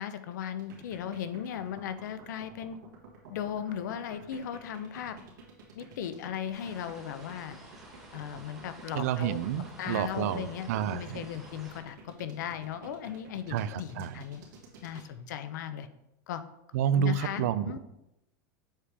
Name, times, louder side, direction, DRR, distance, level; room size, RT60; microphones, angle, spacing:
voice 1, 0.0-2.8 3.3-5.2 5.7-7.6 8.1-9.4 9.8-14.4 14.8-15.9 16.3-16.4 16.9-17.8, left 9 dB, 70° left, 11 dB, 0.6 m, -37 dB
sound 1, 0.6-15.1, right 4 dB, 75° right, 1.7 m, -51 dB
sound 2, 6.5-11.8, right 1 dB, 5° right, 1.3 m, -52 dB
voice 2, 8.9-11.3 13.5-14.2 16.7-17.8, right 9 dB, 55° right, 14 dB, 0.4 m, -30 dB
7.4 x 5.0 x 3.3 m, 0.89 s
supercardioid pair, 175°, 10 cm